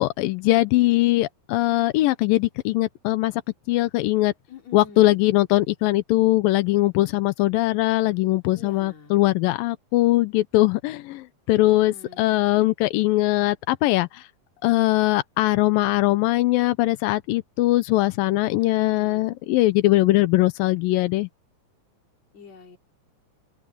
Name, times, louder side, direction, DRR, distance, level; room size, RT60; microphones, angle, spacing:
voice 1, 0.0-3.3 3.7-4.3 4.7-14.3 14.6-21.3, left 17 dB, 90° left, 2.5 m, -21 dB
voice 2, 4.5-5.2 8.5-9.2 11.6-12.2 18.4-19.3 22.3-22.8, left 5 dB, 50° left, 5.0 m, -46 dB
open air
omnidirectional pair, 4.1 m